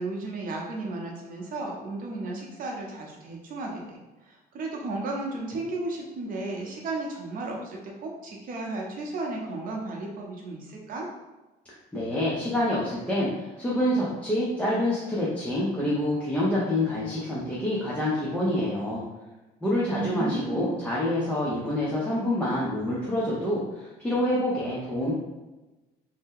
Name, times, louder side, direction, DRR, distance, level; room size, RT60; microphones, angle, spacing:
voice 1, 0.0-4.0 4.2-11.1 19.9-20.8, right 2 dB, 55° right, -1 dB, 0.8 m, -34 dB
voice 2, 11.9-19.1 19.6-25.1, left 1 dB, 5° left, -8 dB, 0.6 m, -27 dB
2.7 x 2.1 x 3.6 m, 1.1 s
cardioid pair, 110°, 17 cm